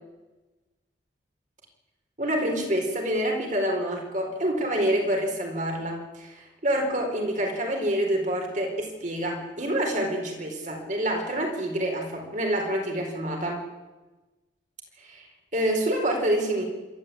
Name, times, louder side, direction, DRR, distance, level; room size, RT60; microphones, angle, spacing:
voice 1, 2.2-13.6 15.0-15.2 15.5-16.6, right 1 dB, 40° right, 2 dB, 4.5 m, -27 dB
27.5 x 13.0 x 8.7 m, 1.2 s
head